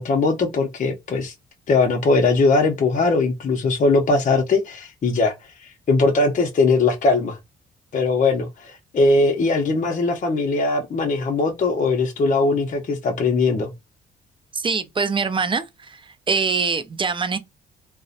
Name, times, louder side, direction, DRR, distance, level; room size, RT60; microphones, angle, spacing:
voice 1, 0.0-1.3 1.7-5.3 5.6-7.4 7.9-13.7, left 3 dB, 40° left, 0.6 m, -20 dB
voice 2, 14.5-16.0 16.3-17.4, right 5 dB, 25° right, 0.4 m, -23 dB
2.7 x 2.0 x 2.4 m
cardioid pair, 90°, 20 cm